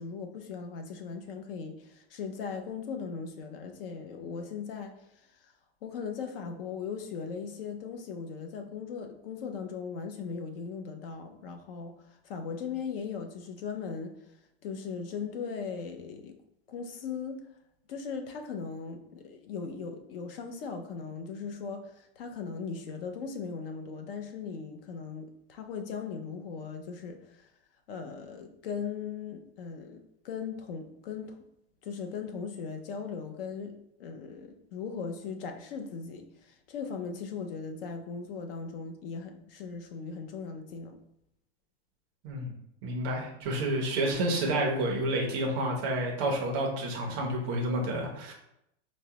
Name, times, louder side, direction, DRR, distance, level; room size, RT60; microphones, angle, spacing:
voice 1, 0.0-5.0 5.4-5.5 5.8-14.2 14.6-16.4 16.7-17.4 17.9-27.4 27.9-31.4 31.8-33.7 34.0-41.0, left 5 dB, 55° left, 6 dB, 0.5 m, -38 dB
voice 2, 42.8-48.3, right 1 dB, 25° right, 0 dB, 0.4 m, -29 dB
4.5 x 2.0 x 2.7 m, 0.79 s
supercardioid pair, 170°, 34 cm